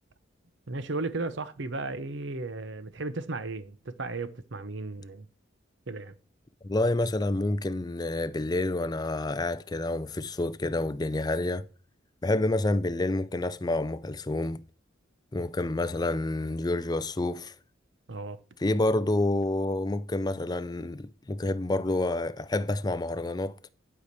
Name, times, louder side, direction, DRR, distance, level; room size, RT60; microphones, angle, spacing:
voice 1, 0.7-5.3 5.9-6.2 18.1-18.4, right 3 dB, 60° right, 0.8 m, -35 dB
voice 2, 6.6-11.7 12.2-14.6 15.3-17.5 18.6-23.6, left 2 dB, 20° left, 0.4 m, -28 dB
11.0 x 4.9 x 6.8 m
head